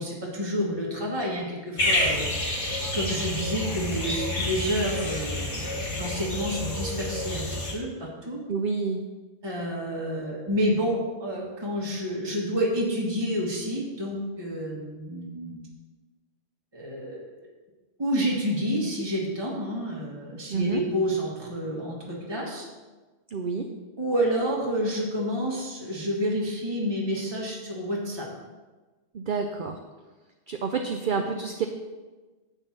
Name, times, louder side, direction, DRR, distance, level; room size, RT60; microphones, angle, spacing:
voice 1, 0.0-2.3 2.9-8.4 9.4-15.6 16.7-17.2 18.0-22.6 24.0-28.3, equal, 20° right, -4 dB, 1.7 m, -29 dB
sound 1, 1.8-7.7, left 1 dB, 75° left, 2.2 m, -29 dB
voice 2, 8.5-9.0 20.5-20.8 23.3-23.7 29.1-29.8 30.5-31.7, right 5 dB, 55° right, 5 dB, 0.7 m, -28 dB
10.0 x 4.1 x 7.4 m, 1.3 s
omnidirectional pair, 1.2 m